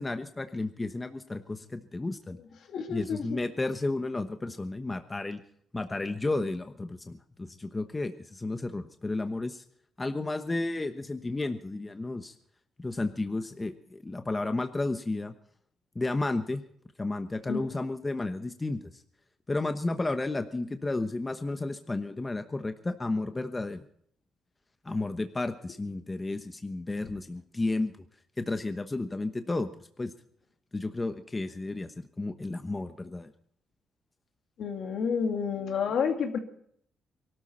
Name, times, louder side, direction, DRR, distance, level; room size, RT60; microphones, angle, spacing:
voice 1, 0.0-2.4 2.9-5.4 5.7-9.6 10.0-12.3 12.8-15.3 15.9-16.6 17.0-18.8 19.5-23.8 24.8-27.9 28.4-29.7 30.0-30.1 30.7-33.3, left 2 dB, 20° left, 8 dB, 1.0 m, -32 dB
voice 2, 2.7-3.4 17.5-17.6 34.6-36.4, left 6 dB, 65° left, 5 dB, 2.4 m, -30 dB
23.5 x 13.0 x 4.4 m, 0.66 s
cardioid pair, 90°, 0 cm